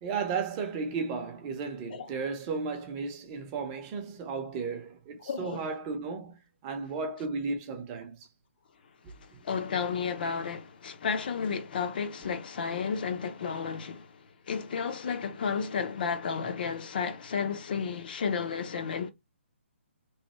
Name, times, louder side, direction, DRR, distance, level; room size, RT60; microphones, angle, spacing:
voice 1, 0.0-8.2 9.3-9.4, right 4 dB, 20° right, 0.6 m, -34 dB
voice 2, 5.3-5.7 9.1-19.1, left 6 dB, 45° left, 0.6 m, -32 dB
3.1 x 2.2 x 4.2 m
hypercardioid pair, 160°, 7 cm